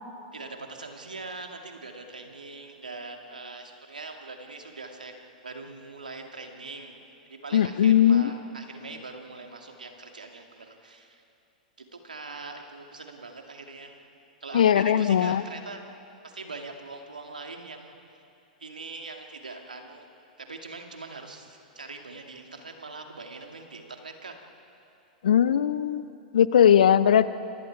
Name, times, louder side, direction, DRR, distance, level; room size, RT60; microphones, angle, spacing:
voice 1, 0.3-5.1 5.4-6.9 7.3-11.2 11.8-14.0 14.4-15.8 16.2-17.9 18.6-20.1 20.4-24.3, right 3 dB, 85° right, 3 dB, 2.4 m, -42 dB
voice 2, 7.5-8.3 14.5-15.4 25.2-26.0 26.3-27.3, left 9 dB, 70° left, 15 dB, 0.7 m, -19 dB
29.0 x 26.5 x 4.7 m, 2.7 s
figure-of-eight pair, 100°, 4 cm